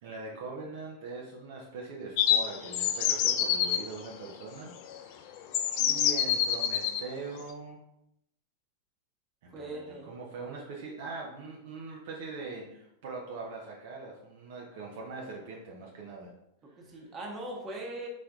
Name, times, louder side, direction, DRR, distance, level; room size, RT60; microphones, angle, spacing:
voice 1, 0.0-5.4 5.8-7.8 9.4-16.3 16.7-17.1, right 3 dB, 55° right, -2 dB, 0.7 m, -42 dB
sound 1, 2.2-3.8 4.9-5.0 5.5-7.0, left 9 dB, 45° left, 0.4 m, -26 dB
voice 2, 9.5-10.1 16.6-18.1, right 1 dB, 25° right, 0 dB, 1.1 m, -40 dB
4.4 x 4.0 x 2.4 m, 0.79 s
figure-of-eight pair, 90°, 0 cm